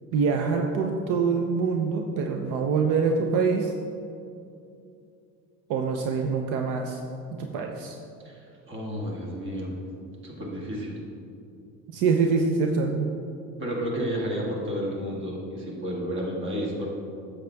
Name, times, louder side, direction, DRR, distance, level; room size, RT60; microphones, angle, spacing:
voice 1, 0.1-3.7 5.7-7.0 7.4-8.0 11.9-13.1, right 5 dB, 80° right, 3 dB, 0.7 m, -25 dB
voice 2, 8.2-9.7 10.2-11.0 13.6-16.9, equal, 40° right, -2 dB, 2.1 m, -31 dB
10.0 x 7.2 x 3.5 m, 2.6 s
cardioid pair, 115°, 31 cm